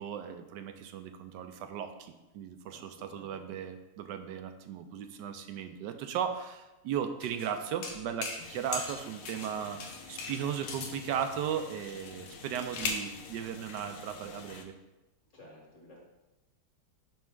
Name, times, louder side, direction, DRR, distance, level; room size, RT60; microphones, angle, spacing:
voice 1, 0.0-14.7, right 8 dB, 85° right, 8 dB, 1.2 m, -36 dB
voice 2, 2.7-3.5 15.3-16.0, left 1 dB, 45° left, -3 dB, 2.0 m, -54 dB
Sound Design Sword Clanging edited, 7.2-7.5 7.8-8.5 8.7-9.5 9.8-11.0 12.0-13.1, left 4 dB, 85° left, 1.5 m, -38 dB
sound 1, 8.4-14.6, left 5 dB, 65° left, 1.0 m, -49 dB
5.9 x 5.3 x 3.7 m, 1.0 s
omnidirectional pair, 1.8 m